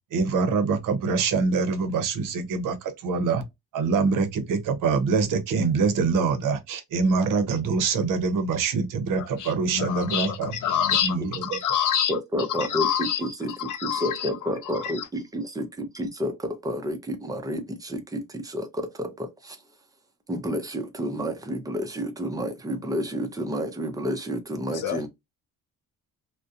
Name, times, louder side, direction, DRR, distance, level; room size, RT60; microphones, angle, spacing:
voice 1, 0.1-3.4 3.7-10.8 11.0-11.6, right 4 dB, 65° right, 0.7 m, -25 dB
voice 2, 9.2-13.2 13.5-14.3 14.6-15.1 24.7-25.0, left 9 dB, 65° left, 0.5 m, -27 dB
voice 3, 12.1-19.6 20.3-25.1, equal, 10° right, 0.4 m, -30 dB
2.4 x 2.1 x 2.6 m
cardioid pair, 150°, 34 cm